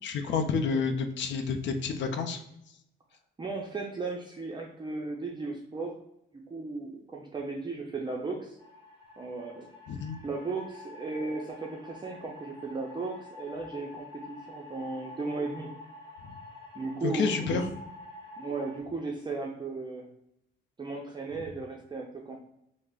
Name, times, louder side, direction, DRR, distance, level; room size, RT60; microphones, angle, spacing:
voice 1, 0.0-2.4 9.9-10.2 16.2-16.3 17.0-17.6, left 5 dB, 65° left, 7 dB, 0.5 m, -29 dB
voice 2, 3.4-6.0 6.5-8.6 9.2-9.7 10.2-15.7 16.7-17.6 18.4-20.1 20.8-22.4, right 3 dB, 20° right, -1 dB, 0.5 m, -36 dB
sound 1, 8.6-18.8, left 3 dB, 25° left, 1.2 m, -48 dB
3.2 x 2.0 x 3.7 m, 0.79 s
cardioid pair, 90°, 20 cm